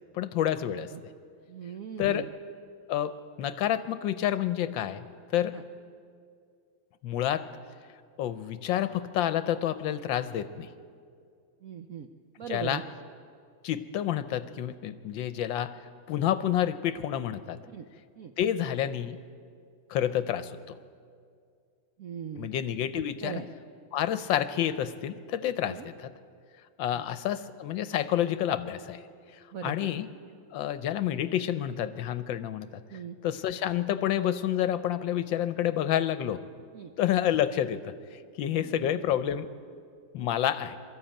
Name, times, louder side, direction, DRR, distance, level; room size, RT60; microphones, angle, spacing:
voice 1, 0.1-0.9 2.0-2.3 2.9-5.0 5.3-5.6 7.0-7.4 8.2-10.7 12.5-12.8 13.6-15.8 16.1-17.6 18.4-19.2 19.9-20.8 22.3-23.5 23.9-26.1 26.8-29.0 29.6-30.1 30.5-32.7 33.2-36.4 37.0-37.9 38.4-39.5 40.1-40.8, left 11 dB, 75° left, 13 dB, 1.3 m, -29 dB
voice 2, 1.5-2.3 11.6-12.1 12.4-12.8 17.7-17.8 18.2-18.3 22.0-22.5 23.2-23.4 25.7-25.8 26.9-27.0 29.5-29.9 32.9-33.2 36.7-36.9 38.5-38.8, right 8 dB, 70° right, 7 dB, 0.8 m, -39 dB
23.0 x 13.0 x 8.9 m, 2.3 s
omnidirectional pair, 2.3 m